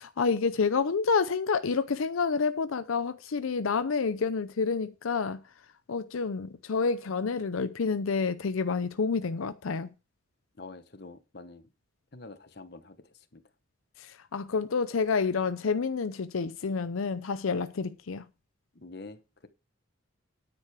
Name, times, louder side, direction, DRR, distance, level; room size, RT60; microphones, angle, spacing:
voice 1, 0.0-5.4 5.9-9.9 14.0-18.2, left 5 dB, 85° left, 0.6 m, -29 dB
voice 2, 10.6-11.7 12.1-13.4 18.7-19.5, left 3 dB, 50° left, 1.0 m, -47 dB
9.8 x 8.3 x 4.7 m
head